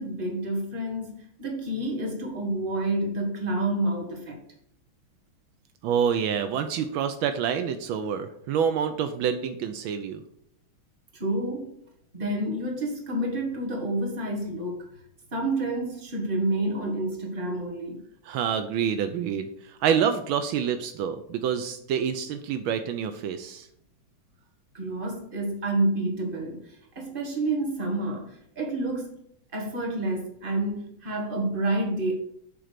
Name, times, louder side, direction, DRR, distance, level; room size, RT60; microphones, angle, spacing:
voice 1, 0.0-4.4 11.1-11.7 12.1-14.9 15.3-18.0 24.7-29.2 29.5-32.1, right 1 dB, 25° right, 0 dB, 1.8 m, -29 dB
voice 2, 5.8-10.2 18.3-19.5 19.8-23.7, right 8 dB, 80° right, 8 dB, 1.4 m, -27 dB
7.7 x 3.8 x 6.6 m, 0.70 s
omnidirectional pair, 2.3 m